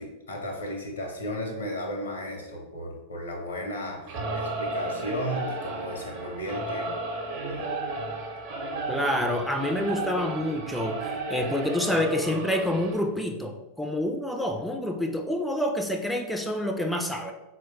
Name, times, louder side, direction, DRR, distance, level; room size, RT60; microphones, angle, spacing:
voice 1, 0.0-7.0 7.5-7.7, left 1 dB, 75° left, 1 dB, 0.7 m, -34 dB
Singing / Musical instrument, 4.1-13.0, right 2 dB, 40° right, 0.7 m, -33 dB
voice 2, 8.9-17.3, left 1 dB, 5° left, 3 dB, 0.3 m, -28 dB
4.3 x 2.1 x 3.0 m, 1.0 s
figure-of-eight pair, 90°, 0 cm